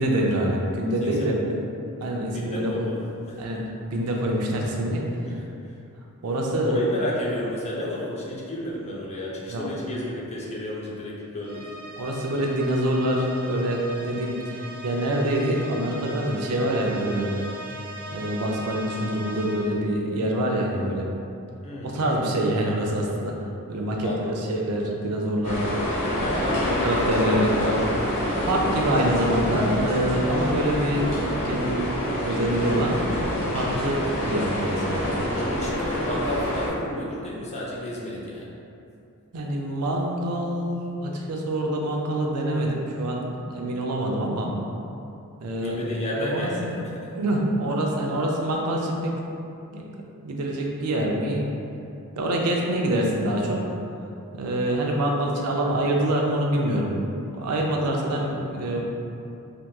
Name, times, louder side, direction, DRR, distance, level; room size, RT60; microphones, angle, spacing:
voice 1, 0.0-1.4 2.0-2.9 3.4-5.0 6.2-6.8 9.5-9.7 12.0-17.3 18.1-21.1 21.8-23.3 23.7-25.7 26.7-27.5 28.5-31.9 32.2-33.0 33.5-35.0 39.3-44.5 45.4-45.8 46.2-46.7 47.1-49.2 49.7-49.8 50.2-51.5 52.2-53.6 54.3-58.9, right 1 dB, 90° right, -1 dB, 0.5 m, -25 dB
voice 2, 1.0-1.5 2.2-3.6 5.2-5.8 6.6-11.7 21.6-22.0 24.0-24.5 26.2-28.6 35.3-38.5 45.6-47.1 58.1-58.5, left 1 dB, 30° left, -4 dB, 0.5 m, -32 dB
sound 1, 11.4-19.9, equal, 50° right, 0.7 m, -39 dB
sound 2, 25.4-36.7, equal, 70° left, 0.8 m, -27 dB
3.4 x 2.8 x 2.2 m, 2.6 s
head